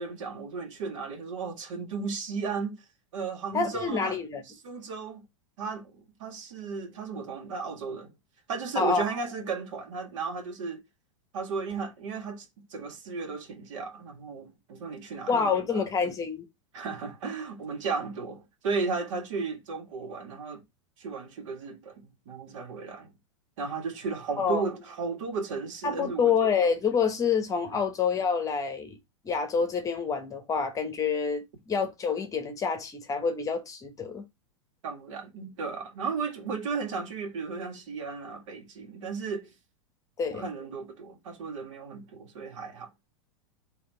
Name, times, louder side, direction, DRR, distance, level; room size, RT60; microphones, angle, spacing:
voice 1, 0.0-2.8 3.1-4.2 4.6-5.2 5.6-8.1 8.5-10.8 11.3-15.4 15.7-15.8 16.7-20.6 21.0-23.1 23.6-26.3 34.8-39.5 40.3-42.9, right 4 dB, 75° right, 1.7 m, -35 dB
voice 2, 3.5-4.4 8.8-9.0 15.3-16.5 24.4-24.6 25.8-29.0 29.2-34.2 40.2-40.5, left 5 dB, 20° left, 1.0 m, -27 dB
4.3 x 2.9 x 3.8 m
hypercardioid pair, 130°, 16 cm